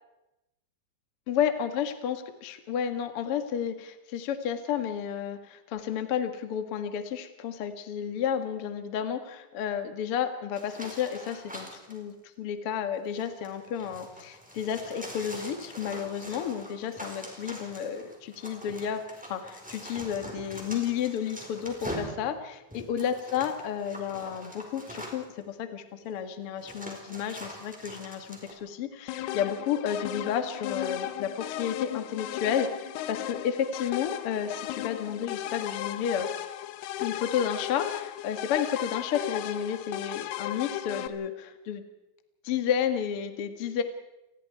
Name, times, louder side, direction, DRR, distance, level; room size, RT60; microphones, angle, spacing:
voice 1, 1.3-19.0 19.3-36.3 37.0-41.8 42.4-43.8, left 8 dB, 55° left, 8 dB, 1.6 m, -31 dB
sound 1, 10.5-12.0 13.0-25.4 26.1-26.2 26.6-28.5, equal, ahead, 3.7 m, -43 dB
sound 2, 29.1-41.1, left 12 dB, 75° left, 2.8 m, -35 dB
29.0 x 20.5 x 4.7 m, 0.94 s
omnidirectional pair, 4.8 m